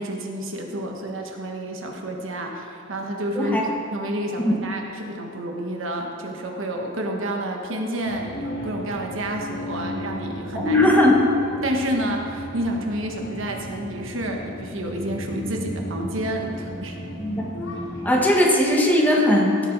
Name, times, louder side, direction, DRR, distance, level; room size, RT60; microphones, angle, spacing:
voice 1, 0.0-3.6 3.9-10.9 11.6-17.0, right 1 dB, 70° right, 1 dB, 1.3 m, -29 dB
sound 1, 8.0-18.0, equal, 60° left, 2.3 m, -34 dB
voice 2, 10.5-11.1 17.2-17.4 18.0-19.6, left 1 dB, 10° left, -2 dB, 1.4 m, -18 dB
16.5 x 7.7 x 4.0 m, 2.8 s
head